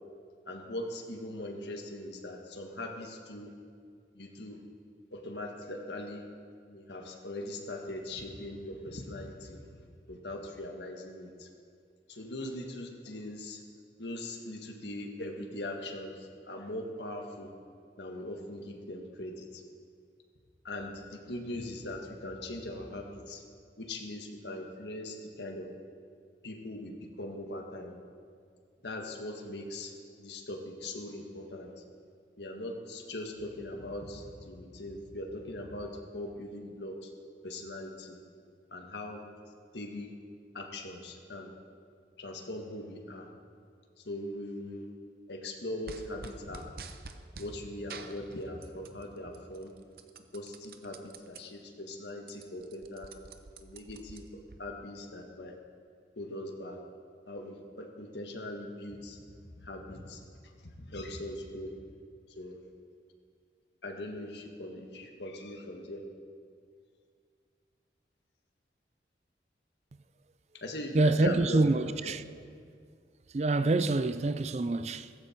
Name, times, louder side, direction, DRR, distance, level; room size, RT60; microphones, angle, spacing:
voice 1, 0.5-3.5 4.1-4.6 5.1-6.3 6.7-9.8 10.1-11.5 12.1-13.6 14.0-17.5 18.0-19.6 20.6-23.4 23.8-25.7 26.4-27.9 28.8-31.8 32.4-37.1 37.4-38.2 38.7-39.2 39.7-40.1 40.5-41.5 42.2-43.3 44.0-44.9 45.3-46.7 47.4-49.7 50.3-53.1 53.6-54.3 54.6-55.5 56.2-56.8 57.3-59.2 59.6-60.2 60.6-61.7 62.4-62.7 63.8-66.0 70.5-72.1, left 1 dB, 80° left, 1.7 m, -40 dB
sound 1, 45.9-47.5 47.9-49.0 49.3-51.4 51.8-51.9 52.2-54.6, right 4 dB, 55° right, 0.8 m, -47 dB
voice 2, 70.9-72.2 73.3-75.1, right 2 dB, 40° right, 0.4 m, -26 dB
16.0 x 15.0 x 4.5 m
head